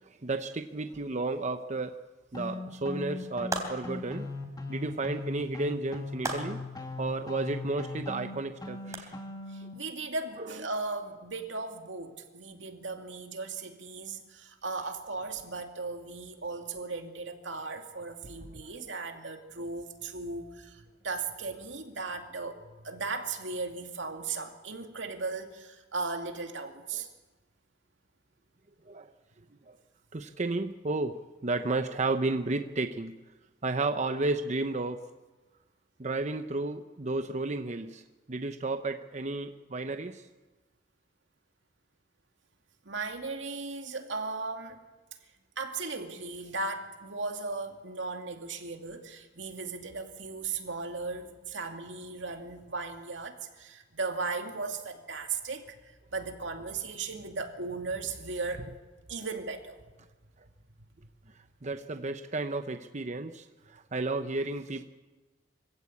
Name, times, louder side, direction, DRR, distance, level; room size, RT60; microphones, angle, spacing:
voice 1, 0.2-2.0 2.3-4.3 4.7-9.1 9.6-9.7 10.4-10.5 18.6-18.7 26.9-27.0 28.9-29.1 29.7-29.8 30.1-33.2 33.6-35.0 36.0-38.0 38.3-40.2 61.6-64.8, right 2 dB, 40° right, 7 dB, 0.8 m, -32 dB
sound 1, 2.3-9.7, left 2 dB, 20° left, 2.0 m, -39 dB
sound 2, 3.5-4.1 6.2-6.8 8.9-9.0, right 2 dB, 20° right, 3.3 m, -35 dB
voice 2, 9.5-27.1 42.8-44.8 45.6-58.8 59.1-59.8, right 3 dB, 85° right, 4 dB, 2.4 m, -37 dB
25.0 x 16.0 x 8.5 m, 1.2 s
head